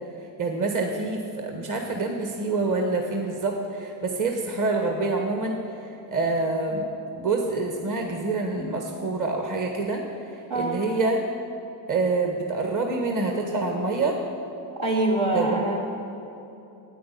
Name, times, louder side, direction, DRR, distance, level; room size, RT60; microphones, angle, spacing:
voice 1, 0.4-5.6 6.1-6.8 7.1-11.2 11.9-14.2 15.3-15.6, right 3 dB, 40° right, 2 dB, 1.6 m, -26 dB
voice 2, 10.5-10.9 14.8-15.8, right 2 dB, 80° right, -4 dB, 3.1 m, -24 dB
10.5 x 9.4 x 8.6 m, 2.9 s
cardioid pair, 75°, 47 cm